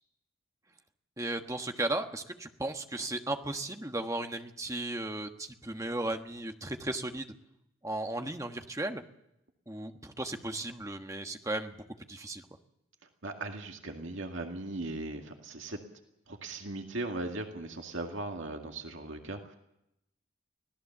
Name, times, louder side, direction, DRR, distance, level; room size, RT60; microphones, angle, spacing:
voice 1, 1.2-7.3 7.8-9.0 9.7-11.8 12.1-12.4, right 2 dB, 15° right, 5 dB, 1.3 m, -35 dB
voice 2, 13.2-15.8 16.3-19.6, right 2 dB, 70° right, 3 dB, 2.1 m, -38 dB
25.5 x 17.5 x 7.3 m, 0.83 s
head